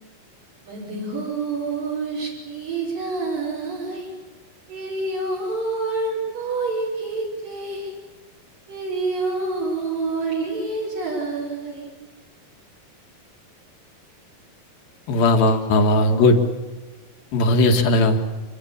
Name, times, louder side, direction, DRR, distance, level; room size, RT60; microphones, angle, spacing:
voice 1, 0.7-4.1 4.7-7.9 8.7-11.9 15.5-15.6, right 3 dB, 65° right, -5 dB, 7.3 m, -27 dB
voice 2, 15.1-16.4 17.3-18.2, left 2 dB, 75° left, 5 dB, 3.7 m, -17 dB
26.5 x 24.5 x 7.3 m, 1.3 s
omnidirectional pair, 4.2 m